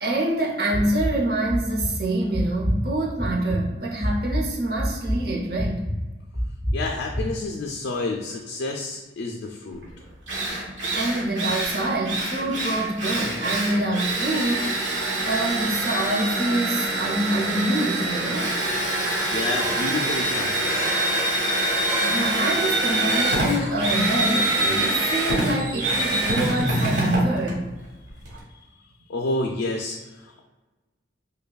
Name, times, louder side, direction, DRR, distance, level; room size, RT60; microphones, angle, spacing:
voice 1, 0.0-5.8 10.9-18.6 22.0-27.7, right 1 dB, 55° right, -2 dB, 0.7 m, -26 dB
sound 1, 0.7-1.2 1.5-1.9 2.3-2.8 3.2-3.6 4.0-4.4 4.8-5.2 5.6-6.0 6.3-6.8 7.1-7.2, equal, 10° right, 0.5 m, -25 dB
voice 2, 6.7-9.8 19.3-21.1 28.5-28.6 29.1-30.4, left 2 dB, 70° left, 2 dB, 0.4 m, -30 dB
Drill, 9.8-9.9 10.3-28.4, right 1 dB, 85° right, 1.2 m, -25 dB
sound 2, 18.7-20.2 20.6-22.4 23.0-24.7, equal, 45° left, 1.2 m, -36 dB
5.1 x 2.2 x 2.3 m, 1.2 s
head